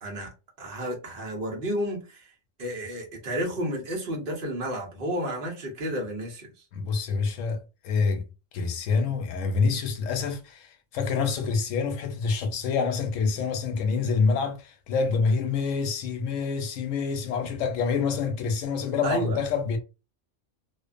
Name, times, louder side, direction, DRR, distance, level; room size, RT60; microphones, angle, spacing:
voice 1, 0.6-2.3 2.6-6.5 19.0-19.4, equal, 50° right, 0.9 m, -31 dB
voice 2, 6.7-8.3 8.5-19.8, left 5 dB, 90° left, 0.9 m, -27 dB
2.4 x 2.2 x 2.4 m
omnidirectional pair, 1.3 m